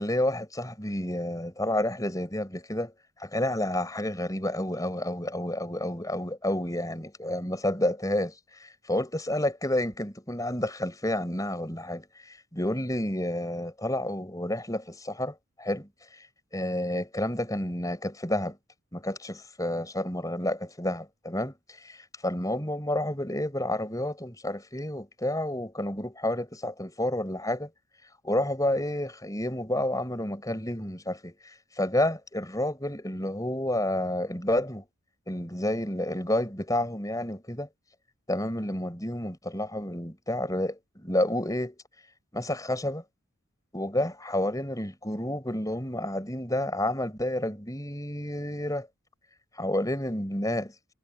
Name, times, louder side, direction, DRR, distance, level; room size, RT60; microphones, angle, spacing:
voice 1, 0.0-2.9 3.2-8.4 8.9-15.9 16.5-18.6 18.9-21.5 21.8-27.7 28.2-31.4 31.8-34.8 35.3-37.7 38.3-41.7 42.3-43.0 43.7-48.9 49.5-50.9, left 1 dB, 15° left, 4.9 m, -30 dB
head